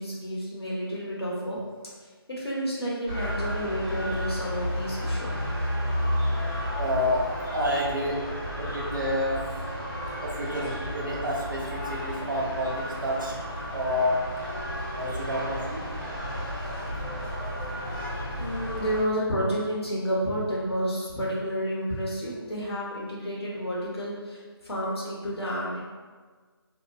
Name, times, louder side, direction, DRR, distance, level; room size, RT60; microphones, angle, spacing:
voice 1, 0.0-1.6 2.3-5.3 18.4-25.9, equal, 75° left, -5 dB, 1.0 m, -30 dB
sound 1, 3.1-19.0, equal, 10° right, 0.3 m, -32 dB
voice 2, 6.8-8.2 8.6-9.5 10.2-13.3 13.7-14.3 14.9-15.8, left 1 dB, 55° right, -4 dB, 0.7 m, -29 dB
2.8 x 2.0 x 2.6 m, 1.4 s
figure-of-eight pair, 160°, 13 cm